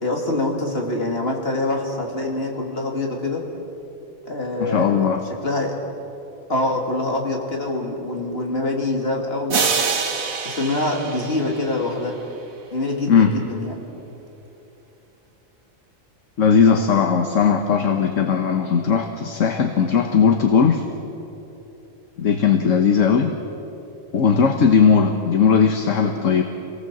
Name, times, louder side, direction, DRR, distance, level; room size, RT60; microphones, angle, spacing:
voice 1, 0.0-3.4 4.3-5.0 5.4-5.7 6.5-9.7 10.4-12.2 12.7-13.8, left 2 dB, 45° left, 0 dB, 3.1 m, -25 dB
voice 2, 4.6-5.2 13.1-13.3 16.4-20.8 22.2-23.3 24.1-26.4, left 6 dB, 65° left, 5 dB, 1.5 m, -18 dB
sound 1, 9.5-12.2, right 5 dB, 80° right, 1.8 m, -25 dB
27.0 x 18.5 x 7.8 m, 3.0 s
omnidirectional pair, 1.4 m